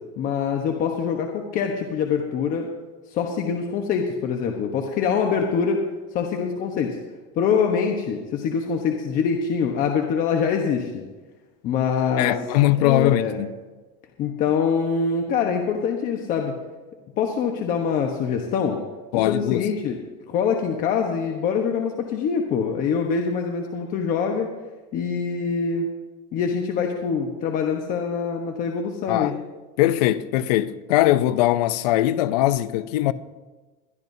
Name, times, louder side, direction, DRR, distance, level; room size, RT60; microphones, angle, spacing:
voice 1, 0.2-2.7 3.1-5.8 6.1-7.0 7.4-11.0 11.6-12.4 12.8-13.4 14.2-16.5 17.2-18.8 19.1-19.9 20.3-24.5 24.9-25.9 26.3-29.3, left 6 dB, 45° left, 1.1 m, -24 dB
voice 2, 12.2-13.6 19.1-19.7 29.1-29.3 29.8-33.1, left 14 dB, 85° left, 0.6 m, -21 dB
21.5 x 12.0 x 2.7 m
supercardioid pair, 145°, 20 cm